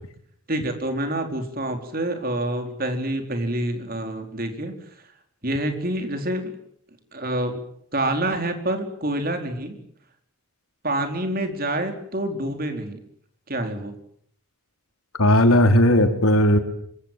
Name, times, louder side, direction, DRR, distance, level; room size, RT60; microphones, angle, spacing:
voice 1, 0.5-4.7 5.4-6.5 7.1-7.6 7.9-9.8 10.8-13.0 13.5-13.9, right 1 dB, 45° right, 5 dB, 4.5 m, -27 dB
voice 2, 15.2-16.6, left 1 dB, 90° left, 5 dB, 4.4 m, -16 dB
26.5 x 25.5 x 7.7 m, 0.69 s
head